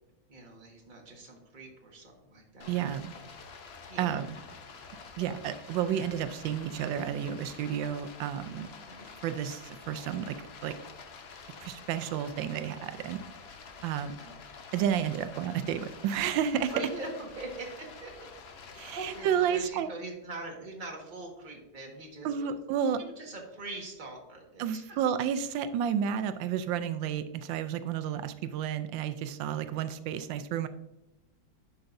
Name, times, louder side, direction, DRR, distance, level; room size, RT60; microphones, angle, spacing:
voice 1, 0.3-2.8 3.2-3.3 3.9-4.2 5.6-5.8 8.8-9.1 14.0-14.3 16.7-18.1 18.9-22.6 23.0-25.0, right 2 dB, 25° right, 0 dB, 1.6 m, -43 dB
Stream, 2.6-19.7, left 5 dB, 55° left, 0.7 m, -48 dB
voice 2, 2.7-3.1 4.0-4.4 5.2-8.7 9.2-10.3 10.6-10.7 11.6-13.2 13.8-14.1 14.7-16.7 18.7-19.9 22.2-23.0 24.6-30.7, right 9 dB, 90° right, 11 dB, 1.3 m, -31 dB
10.5 x 5.8 x 2.6 m, 0.91 s
omnidirectional pair, 2.0 m